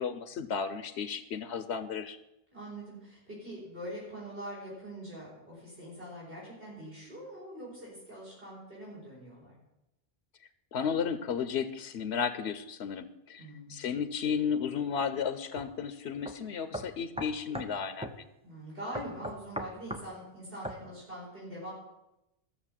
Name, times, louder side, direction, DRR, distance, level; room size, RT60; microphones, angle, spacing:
voice 1, 0.0-2.2 10.7-18.2, left 6 dB, 90° left, 11 dB, 1.0 m, -33 dB
voice 2, 2.5-9.5 13.4-13.8 18.4-21.7, right 1 dB, 65° right, -7 dB, 4.8 m, -43 dB
sound 1, 15.6-15.7 16.3-16.4 16.7-17.7 18.0-18.2 18.9-20.1 20.6-20.8, equal, 5° right, 0.7 m, -38 dB
14.0 x 6.9 x 7.4 m, 0.92 s
omnidirectional pair, 1.1 m